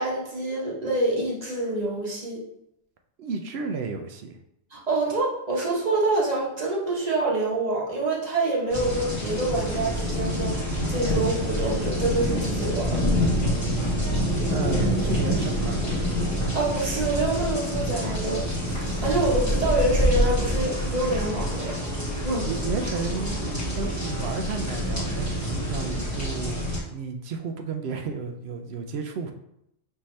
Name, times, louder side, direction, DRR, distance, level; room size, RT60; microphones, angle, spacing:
voice 1, 0.0-2.4 4.7-13.1 16.5-18.5 19.0-21.8 22.2-22.5, right 2 dB, 35° right, -4 dB, 1.0 m, -26 dB
voice 2, 3.2-4.4 14.5-15.8 22.5-29.3, right 4 dB, 65° right, 5 dB, 0.7 m, -32 dB
sound 1, 8.7-26.8, equal, 15° left, 1.0 m, -26 dB
sound 2, 18.7-24.4, left 2 dB, 90° right, 2.1 m, -45 dB
5.5 x 2.8 x 3.1 m, 0.79 s
omnidirectional pair, 1.3 m